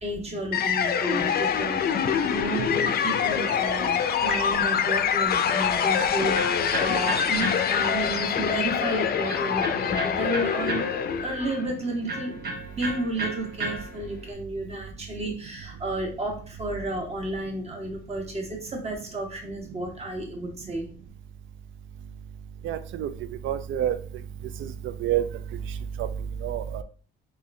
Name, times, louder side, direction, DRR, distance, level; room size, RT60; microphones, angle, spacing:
voice 1, 0.0-10.9 11.2-12.4 12.7-20.9, right 1 dB, 30° right, 1 dB, 1.2 m, -32 dB
sound 1, 0.5-11.7, left 8 dB, 50° left, 0.4 m, -25 dB
Electric guitar, 5.2-14.3, right 2 dB, 55° right, 1.0 m, -36 dB
voice 2, 22.6-23.1 23.4-24.0 24.6-25.3 26.0-26.1 26.4-26.8, right 11 dB, 80° right, 11 dB, 0.4 m, -28 dB
3.6 x 2.6 x 3.2 m, 0.41 s
cardioid pair, 90°, 20 cm